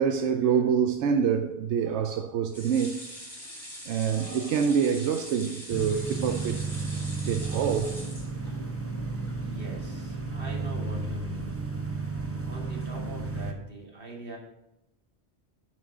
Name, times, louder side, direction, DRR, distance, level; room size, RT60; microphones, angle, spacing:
voice 1, 0.0-3.0 3.9-6.6 7.3-8.0, right 7 dB, 90° right, 0.9 m, -26 dB
sound 1, 2.5-8.8 9.3-9.4 9.7-9.8, equal, 25° left, 4.0 m, -43 dB
sound 2, 5.7-13.5, right 3 dB, 15° right, 0.7 m, -33 dB
voice 2, 9.4-11.6 12.4-14.4, right 2 dB, 55° right, 2.2 m, -42 dB
8.9 x 4.7 x 6.0 m
omnidirectional pair, 1.2 m